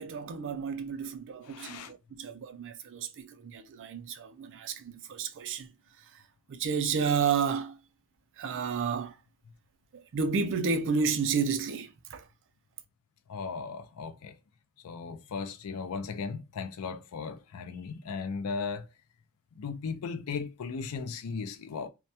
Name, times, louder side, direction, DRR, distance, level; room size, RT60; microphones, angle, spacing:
voice 1, 0.0-1.8 2.2-3.1 3.4-5.7 6.5-7.7 8.4-9.1 10.1-12.2, right 5 dB, 60° right, 0.4 m, -31 dB
voice 2, 1.4-1.9 13.3-14.4 14.8-18.9 19.6-21.9, left 5 dB, 70° left, 0.4 m, -36 dB
2.2 x 2.1 x 2.6 m
head